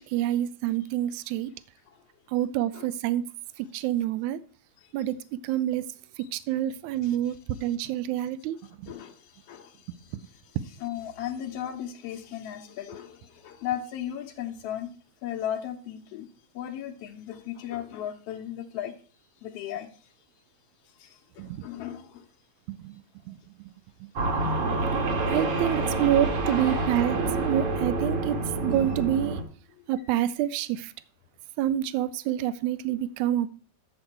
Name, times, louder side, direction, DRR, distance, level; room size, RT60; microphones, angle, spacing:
voice 1, 0.0-1.5 2.3-3.2 3.6-4.4 4.9-5.9 6.2-8.9 10.1-10.2 10.6-10.7 21.4-21.7 22.7-23.4 24.0-24.1 25.3-29.4 29.9-30.9 31.6-33.5, right 12 dB, 85° right, 16 dB, 2.0 m, -28 dB
voice 2, 8.6-14.9 15.2-16.3 16.5-18.9 19.4-19.9 21.0-22.3 24.7-24.9 25.2-25.3 26.6-26.9 29.8-29.9, left 10 dB, 70° left, 1 dB, 1.7 m, -37 dB
sound 1, 24.2-29.4, right 2 dB, 55° right, 2.2 m, -27 dB
10.5 x 7.6 x 4.5 m, 0.43 s
omnidirectional pair, 3.3 m